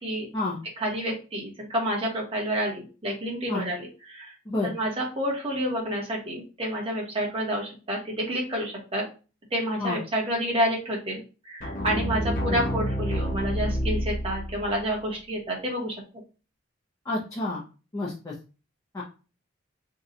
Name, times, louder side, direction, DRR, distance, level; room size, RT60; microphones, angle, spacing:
voice 1, 0.8-4.3 4.6-9.0 9.5-16.0, equal, 30° right, -3 dB, 1.0 m, -29 dB
sound 1, 11.6-14.7, equal, 40° left, 0.8 m, -28 dB
voice 2, 12.3-12.6 17.1-17.6 17.9-18.3 18.9-19.0, left 2 dB, 15° left, -5 dB, 0.6 m, -29 dB
2.8 x 2.2 x 3.7 m, 0.34 s
head